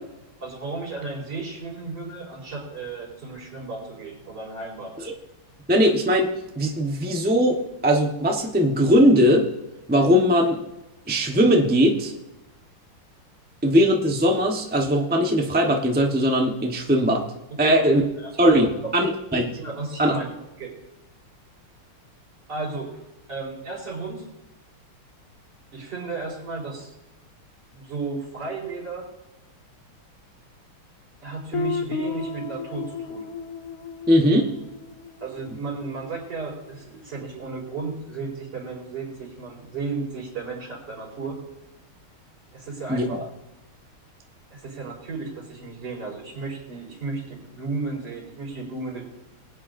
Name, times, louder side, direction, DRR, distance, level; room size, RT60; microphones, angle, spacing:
voice 1, 0.4-4.9 17.6-17.9 18.2-18.9 19.5-20.3 20.6-20.7 22.5-22.9 23.3-24.2 25.7-26.9 27.7-29.0 31.2-33.3 35.2-41.4 42.5-43.2 44.5-49.0, right 3 dB, 55° right, -3 dB, 4.8 m, -34 dB
voice 2, 5.7-9.5 9.9-10.6 11.1-12.1 13.6-17.2 17.6-18.0 18.4-19.6 20.0-20.2 34.1-34.5 42.9-43.3, equal, 10° right, 1 dB, 0.5 m, -20 dB
Guitar, 31.5-36.2, left 5 dB, 70° left, 0.8 m, -34 dB
21.5 x 8.9 x 2.6 m, 0.97 s
omnidirectional pair, 2.4 m